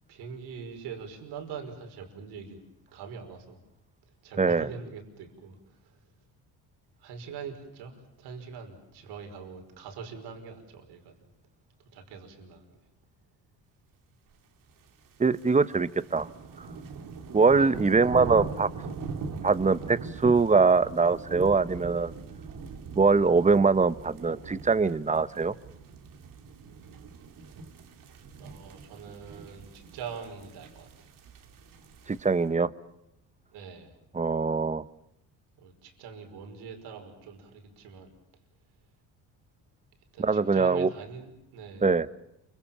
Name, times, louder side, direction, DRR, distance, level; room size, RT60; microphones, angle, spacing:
voice 1, 0.1-2.6 2.9-3.6 4.2-5.9 7.0-11.1 11.9-12.7 17.6-17.7 28.4-30.9 33.5-34.0 35.6-38.1 40.1-41.9, right 6 dB, 80° right, 5 dB, 5.5 m, -43 dB
voice 2, 4.4-4.7 15.2-16.3 17.3-18.7 19.4-22.1 23.0-25.5 32.1-32.7 34.1-34.8 40.2-40.9 41.8-42.1, right 4 dB, 20° right, 15 dB, 1.1 m, -23 dB
sound 1, 14.9-32.4, right 4 dB, 55° right, 2.8 m, -41 dB
29.0 x 25.5 x 7.3 m, 0.84 s
cardioid pair, 90°, 38 cm